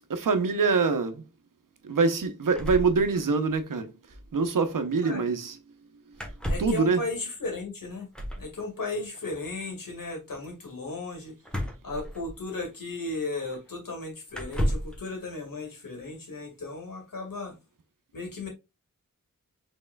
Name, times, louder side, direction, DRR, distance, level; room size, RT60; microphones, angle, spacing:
voice 1, 0.1-1.2 1.8-3.9 4.3-5.6 6.6-7.0, right 4 dB, 75° right, 0.8 m, -24 dB
sound 1, 2.5-3.6 3.8-3.9 4.1-4.3 6.1-6.9 8.1-8.5 11.4-12.6 13.5-13.6 14.3-15.0, equal, 5° left, 1.1 m, -32 dB
voice 2, 6.5-8.1 8.4-11.3 11.8-17.5 18.1-18.5, left 3 dB, 80° left, 2.1 m, -35 dB
5.3 x 3.6 x 2.3 m
wide cardioid pair, 80°, 33 cm